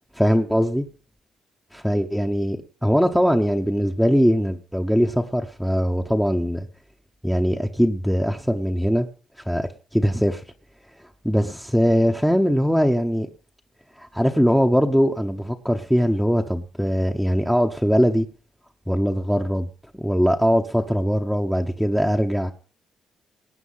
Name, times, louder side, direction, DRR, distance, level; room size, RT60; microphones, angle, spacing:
voice 1, 0.1-0.9 1.7-2.6 2.8-6.7 7.2-9.1 9.5-10.4 11.2-13.3 14.0-18.3 18.9-19.7 19.9-22.5, equal, ahead, 3 dB, 1.0 m, -21 dB
18.5 x 9.0 x 5.6 m, 0.42 s
cardioid pair, 90°, 0 cm